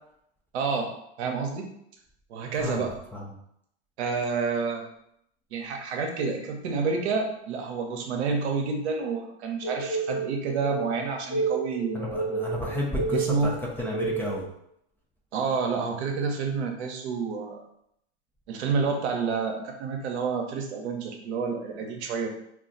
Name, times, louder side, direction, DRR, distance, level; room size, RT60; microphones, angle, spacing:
voice 1, 0.5-0.9 1.2-1.7 2.3-3.0 4.0-4.9 5.5-12.4 13.1-13.6 15.3-17.6 18.5-22.3, right 5 dB, 75° right, 3 dB, 0.8 m, -29 dB
voice 2, 2.6-3.3 11.9-13.5 13.8-14.5, left 1 dB, 5° left, -4 dB, 0.4 m, -32 dB
sound 1, 9.6-14.5, right 4 dB, 75° left, 0.9 m, -30 dB
2.4 x 2.3 x 3.8 m, 0.74 s
hypercardioid pair, 105°, 34 cm